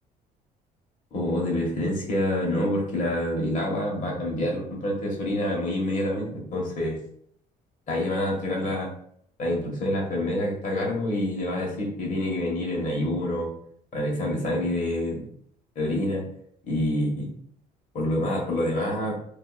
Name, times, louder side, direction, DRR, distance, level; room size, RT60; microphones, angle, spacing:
voice 1, 1.1-7.0 7.9-8.9 9.4-13.5 13.9-15.3 15.7-16.3 16.7-17.3 17.9-19.1, left 1 dB, 50° left, -2 dB, 1.1 m, -27 dB
2.6 x 2.4 x 2.3 m, 0.68 s
cardioid pair, 110°, 17 cm